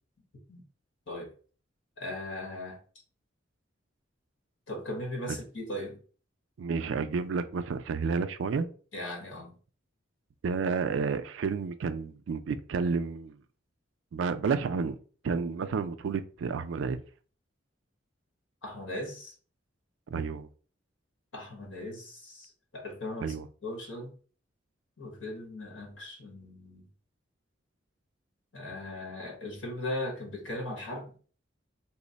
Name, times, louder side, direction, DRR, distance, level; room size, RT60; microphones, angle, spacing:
voice 1, 2.0-2.8 4.7-6.0 8.9-9.6 18.6-19.3 21.3-23.3 23.6-24.1 25.0-26.8 28.5-31.1, left 1 dB, 80° left, 1.2 m, -38 dB
voice 2, 6.6-8.7 10.4-13.3 14.1-15.0 15.2-17.0 20.1-20.5 23.2-23.5, right 5 dB, 70° right, 0.3 m, -30 dB
3.0 x 2.0 x 4.0 m
head